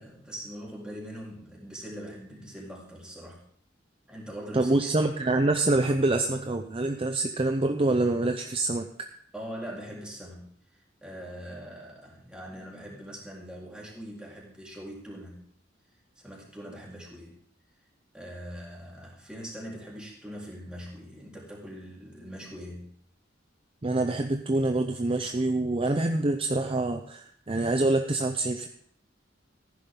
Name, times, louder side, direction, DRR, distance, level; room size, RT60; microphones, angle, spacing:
voice 1, 0.0-3.4 4.1-5.0 9.3-10.4 11.0-15.4 16.2-17.3 18.1-22.9, equal, 5° right, -4 dB, 3.8 m, -42 dB
voice 2, 4.5-8.9 23.8-28.7, right 2 dB, 30° right, 6 dB, 0.6 m, -26 dB
15.0 x 11.0 x 3.8 m, 0.63 s
head